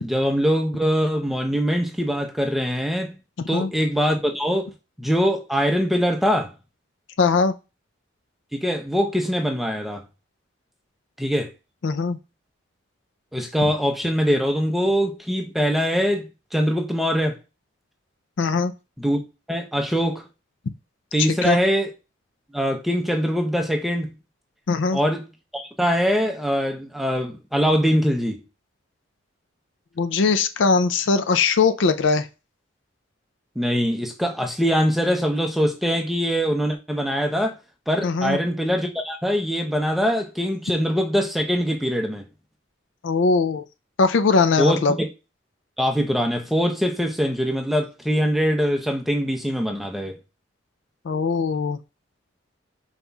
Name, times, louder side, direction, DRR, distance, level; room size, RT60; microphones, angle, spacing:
voice 1, 0.0-3.1 3.5-4.7 5.0-6.5 8.5-10.0 11.2-11.5 13.3-16.2 16.5-17.4 19.0-19.2 19.5-20.2 21.1-21.9 22.5-24.1 24.9-25.3 25.5-28.4 33.6-37.6 37.9-42.3 44.6-45.1 45.8-50.1, equal, ahead, 0.7 m, -23 dB
voice 2, 7.2-7.5 11.8-12.2 18.4-18.7 21.2-21.6 24.7-25.0 30.0-32.3 38.0-38.4 43.0-43.6 44.0-45.0 51.1-51.8, left 4 dB, 70° left, 0.4 m, -20 dB
5.4 x 4.0 x 2.3 m
head